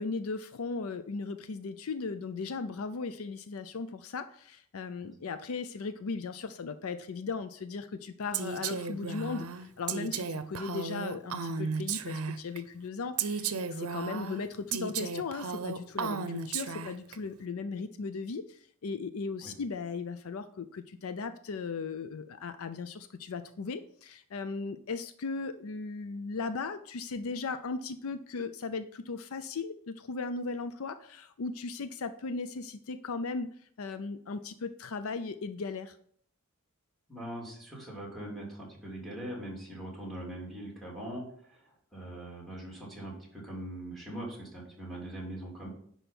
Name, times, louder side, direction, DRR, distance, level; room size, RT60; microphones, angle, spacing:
voice 1, 0.0-33.5 33.8-36.0, left 4 dB, 65° left, 11 dB, 0.5 m, -37 dB
Female speech woman speaking, 8.3-12.6 13.2-17.2, right 5 dB, 75° right, 0.7 m, -34 dB
voice 2, 37.1-45.7, right 1 dB, ahead, -3 dB, 3.1 m, -41 dB
10.5 x 4.5 x 5.4 m, 0.62 s
head